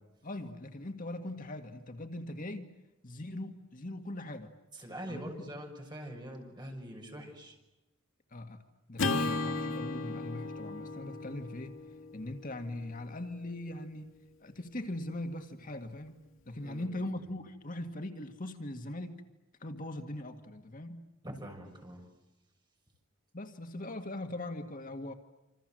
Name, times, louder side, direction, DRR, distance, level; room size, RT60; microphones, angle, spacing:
voice 1, 0.2-2.7 3.0-4.5 5.1-5.3 8.3-8.6 8.9-11.8 12.1-14.1 14.4-16.2 16.4-19.2 19.6-21.0 23.3-25.1, left 1 dB, 40° left, 6 dB, 1.9 m, -40 dB
voice 2, 4.7-7.6 16.6-17.1 21.2-22.0, equal, 20° right, 3 dB, 6.7 m, -44 dB
Acoustic guitar / Strum, 9.0-13.4, left 3 dB, 70° left, 2.1 m, -36 dB
28.0 x 27.0 x 7.8 m, 1.0 s
head